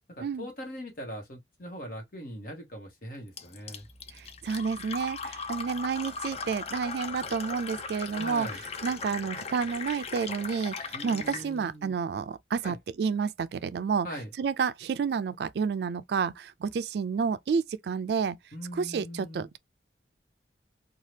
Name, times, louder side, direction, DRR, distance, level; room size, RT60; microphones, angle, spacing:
voice 1, 0.1-3.8 8.1-8.6 10.9-12.0 12.6-12.8 14.0-14.3 18.5-19.5, equal, 55° left, 1.2 m, -41 dB
Fill (with liquid), 3.4-11.5, left 5 dB, 35° left, 0.4 m, -38 dB
Piano, 3.8-10.1, right 1 dB, 5° left, 0.9 m, -58 dB
voice 2, 4.1-14.1 14.4-18.4 18.7-19.6, right 6 dB, 65° right, 0.3 m, -30 dB
2.7 x 2.3 x 3.2 m
head